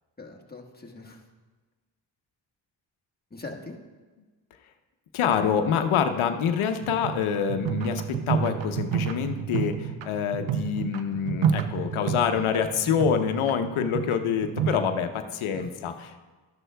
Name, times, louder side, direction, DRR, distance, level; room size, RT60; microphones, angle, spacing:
voice 1, 0.2-1.2 3.3-3.8 15.5-15.9, left 2 dB, 20° left, 0 dB, 1.5 m, -42 dB
voice 2, 5.1-16.2, left 7 dB, 80° left, 8 dB, 0.8 m, -26 dB
sound 1, 6.8-14.9, right 8 dB, 65° right, 0.7 m, -30 dB
13.0 x 11.0 x 2.3 m, 1.3 s
cardioid pair, 60°, 48 cm